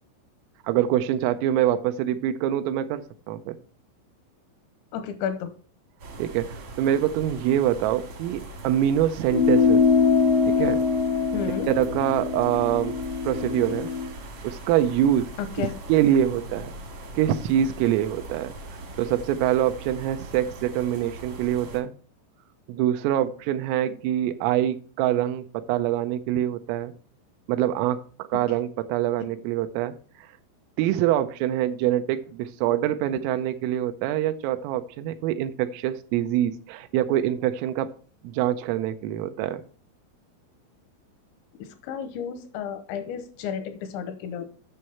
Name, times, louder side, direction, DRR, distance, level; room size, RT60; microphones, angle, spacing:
voice 1, 0.7-3.6 6.2-9.8 10.4-10.8 11.7-13.0 13.2-13.9 14.4-15.3 15.6-16.8 17.1-21.9 22.7-26.9 27.5-28.0 28.3-29.9 30.8-37.9 38.2-39.6, right 11 dB, 85° right, 9 dB, 3.3 m, -25 dB
voice 2, 4.9-5.5 11.3-11.7 15.6-15.7 41.6-44.5, left 7 dB, 85° left, 9 dB, 2.8 m, -32 dB
sound 1, 6.0-21.8, right 2 dB, 65° right, 1.4 m, -40 dB
sound 2, 9.3-14.1, left 6 dB, 65° left, 0.6 m, -23 dB
9.5 x 6.3 x 4.3 m, 0.40 s
omnidirectional pair, 5.8 m